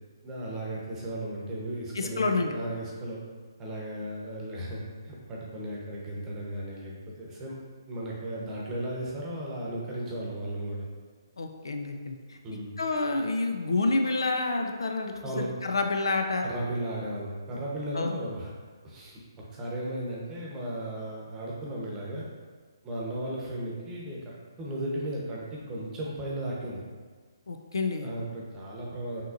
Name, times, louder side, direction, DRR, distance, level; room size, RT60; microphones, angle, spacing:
voice 1, 0.2-3.2 3.6-6.9 7.2-7.6 7.9-10.9 12.4-12.7 15.2-15.5 16.4-18.5 18.8-19.2 19.5-22.3 22.8-26.8 28.0-29.2, right 1 dB, 15° right, -4 dB, 0.9 m, -35 dB
voice 2, 1.9-2.5 11.4-12.4 12.8-16.5 17.9-18.1 27.5-28.1, left 3 dB, 75° left, 4 dB, 0.5 m, -28 dB
5.8 x 3.0 x 2.5 m, 1.5 s
figure-of-eight pair, 145°, 2 cm